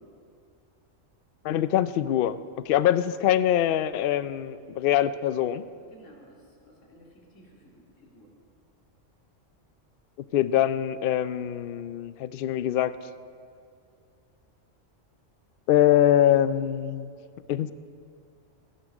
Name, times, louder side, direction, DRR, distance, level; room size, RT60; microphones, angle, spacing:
voice 1, 1.4-2.4 2.7-5.6 10.3-12.9 15.7-17.1 17.5-17.7, left 11 dB, 60° left, 15 dB, 0.6 m, -23 dB
voice 2, 5.8-8.3, equal, 85° left, -1 dB, 2.8 m, -55 dB
16.5 x 10.0 x 6.2 m, 2.3 s
omnidirectional pair, 1.3 m